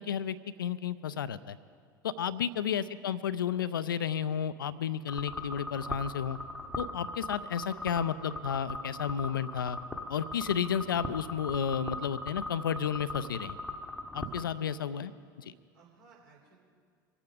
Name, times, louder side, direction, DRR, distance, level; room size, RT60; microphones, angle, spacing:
voice 1, 0.0-1.6 2.0-6.4 6.8-9.8 10.1-13.6 14.1-15.1 15.4-15.5, left 8 dB, 70° left, 15 dB, 0.5 m, -32 dB
voice 2, 2.5-2.8 14.2-14.4 15.7-16.6, right 5 dB, 65° right, -2 dB, 3.9 m, -60 dB
sound 1, 5.1-14.4, left 2 dB, 5° left, 1.0 m, -40 dB
24.5 x 8.6 x 5.2 m, 2.1 s
figure-of-eight pair, 80°, 12 cm